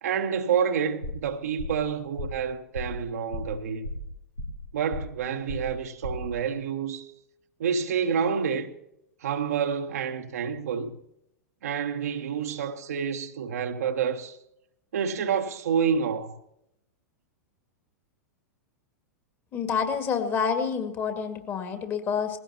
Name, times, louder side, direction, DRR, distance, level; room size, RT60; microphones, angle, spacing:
voice 1, 0.0-3.9 4.7-7.1 7.6-8.7 9.2-10.9 11.6-14.4 14.9-16.4, right 7 dB, 60° right, 1.3 m, -28 dB
sound 1, 1.0-1.3 1.6-1.9 2.2-2.4 2.7-3.0 3.3-3.6 3.8-4.6 4.9-5.2 5.5-5.8 6.0-6.3, left 1 dB, 90° left, 3.5 m, -35 dB
voice 2, 19.5-22.4, left 6 dB, 25° left, 2.1 m, -28 dB
21.0 x 16.5 x 2.9 m
figure-of-eight pair, 95°, 9 cm